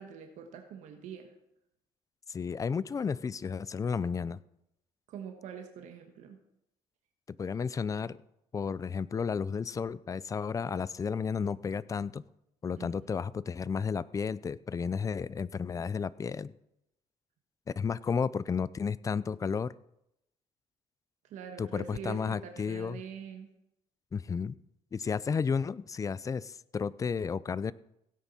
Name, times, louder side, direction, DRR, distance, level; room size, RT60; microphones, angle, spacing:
voice 1, 0.0-1.3 5.1-6.4 12.8-12.9 21.3-23.5, right 7 dB, 75° right, 4 dB, 1.4 m, -44 dB
voice 2, 2.3-4.4 7.4-8.2 8.5-12.2 12.6-16.5 17.8-19.7 21.6-23.0 24.1-24.5 24.9-27.7, left 6 dB, 25° left, 19 dB, 0.4 m, -32 dB
16.5 x 9.6 x 4.3 m, 0.83 s
cardioid pair, 110°, 13 cm